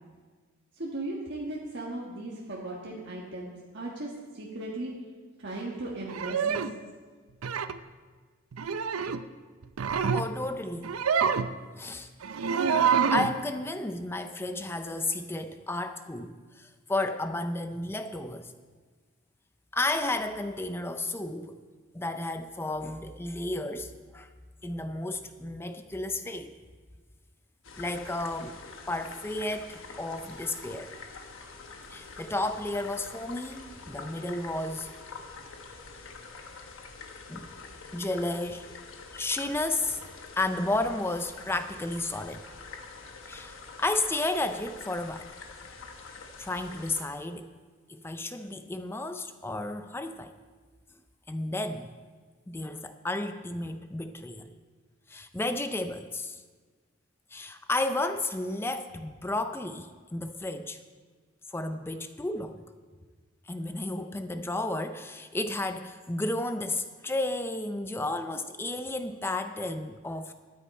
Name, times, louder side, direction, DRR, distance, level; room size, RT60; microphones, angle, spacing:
voice 1, 0.7-4.9 5.4-6.7, right 2 dB, 55° right, -4 dB, 1.5 m, -37 dB
sound 1, 6.1-6.7 7.4-7.8 8.5-9.2 9.6-10.3 10.8-11.5 12.2-13.4, right 6 dB, 90° right, 0.5 m, -27 dB
voice 2, 10.1-10.9 11.8-12.1 13.1-18.5 19.7-21.6 21.9-24.3 24.6-26.5 27.8-28.6 28.9-30.9 31.9-34.9 37.3-37.5 37.9-38.6 39.1-40.0 40.4-42.5 43.3-45.3 46.4-47.5 47.9-50.3 51.3-51.9 52.5-54.5 55.1-56.4 57.3-60.8 61.5-62.6 63.5-70.3, left 2 dB, 10° left, 9 dB, 0.4 m, -32 dB
sound 2, 27.6-47.0, left 4 dB, 65° left, 1.3 m, -46 dB
13.0 x 10.0 x 4.3 m, 1.5 s
head